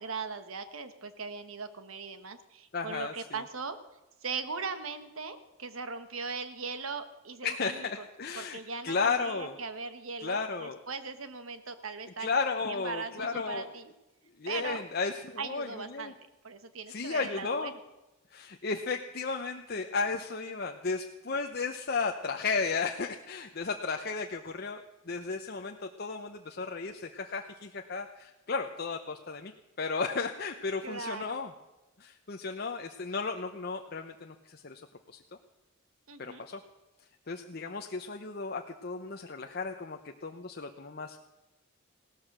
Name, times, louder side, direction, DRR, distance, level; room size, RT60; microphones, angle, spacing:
voice 1, 0.0-3.8 4.2-8.0 8.3-12.3 12.7-13.9 14.5-14.8 15.4-16.2 16.4-17.8 30.8-31.4 36.1-36.5, right 4 dB, 80° right, 10 dB, 1.3 m, -39 dB
voice 2, 2.7-3.1 7.4-8.6 8.8-9.6 10.2-10.8 12.2-13.6 14.4-15.7 15.9-16.1 16.9-17.7 18.3-29.5 29.8-31.5 32.0-34.8 36.2-36.6 37.3-41.2, left 4 dB, 50° left, 4 dB, 0.8 m, -34 dB
17.0 x 13.0 x 6.1 m, 1.0 s
head